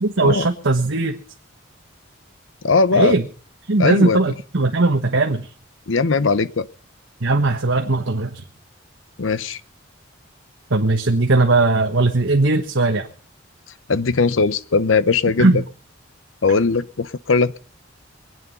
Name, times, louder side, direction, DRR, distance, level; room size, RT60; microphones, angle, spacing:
voice 1, 0.0-1.2 2.9-3.3 3.7-5.5 7.2-8.4 10.7-13.1 15.4-15.6, right 2 dB, 70° right, 1.4 m, -18 dB
voice 2, 2.6-3.2 3.8-4.2 5.9-6.7 9.2-9.6 13.9-15.6 16.4-17.6, left 4 dB, 75° left, 0.8 m, -19 dB
23.5 x 9.3 x 5.5 m
head